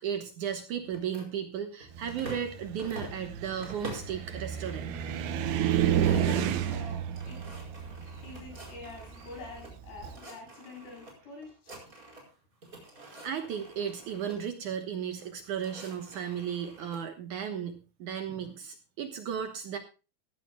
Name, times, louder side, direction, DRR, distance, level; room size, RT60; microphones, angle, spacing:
voice 1, 0.0-5.0 13.0-19.8, right 8 dB, 65° right, 7 dB, 2.2 m, -35 dB
sound 1, 0.9-2.5 2.8-4.2 4.6-5.1 5.4-5.5 5.7-9.7 10.0-11.1 11.4-12.3 12.6-14.4 15.2-17.0, right 2 dB, 20° right, 4.8 m, -47 dB
Car, 2.0-10.2, right 9 dB, 80° right, 3.0 m, -31 dB
voice 2, 5.9-7.5 8.2-11.7, left 3 dB, 85° left, 0 dB, 9.4 m, -46 dB
17.0 x 14.5 x 2.3 m, 0.32 s
omnidirectional pair, 4.6 m